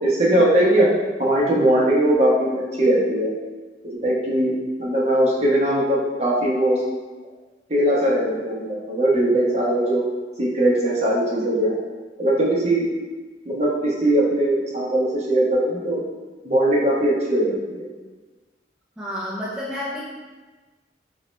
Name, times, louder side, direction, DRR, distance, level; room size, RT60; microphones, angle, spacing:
voice 1, 0.0-0.9 1.2-3.3 4.0-4.5 4.8-6.8 7.7-10.0 10.4-11.7 12.2-12.8 13.4-16.0 16.4-17.8, right 1 dB, 35° right, -5 dB, 0.9 m, -20 dB
voice 2, 19.0-20.0, left 1 dB, 5° right, -8 dB, 0.4 m, -30 dB
3.8 x 3.1 x 3.1 m, 1.3 s
head